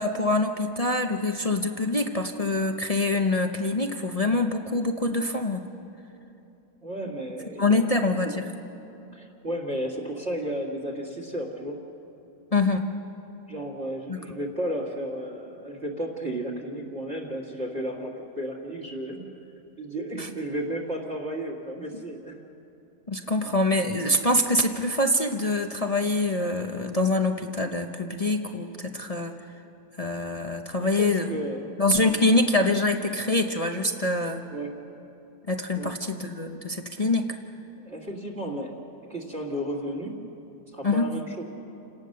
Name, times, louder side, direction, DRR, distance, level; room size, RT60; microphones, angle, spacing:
voice 1, 0.0-5.6 7.6-8.5 12.5-12.8 14.1-14.2 20.1-20.3 23.1-29.3 30.0-31.4 31.8-34.4 35.5-37.3 40.8-41.1, left 2 dB, 35° left, 4 dB, 0.6 m, -25 dB
voice 2, 6.8-8.1 9.1-11.8 13.5-19.2 19.8-22.4 23.2-23.5 30.8-31.7 32.0-32.4 34.5-34.7 35.8-35.9 37.8-38.7 39.1-40.1 40.7-41.4, right 1 dB, 45° right, 1 dB, 2.4 m, -33 dB
29.0 x 18.0 x 6.7 m, 2.8 s
omnidirectional pair, 1.7 m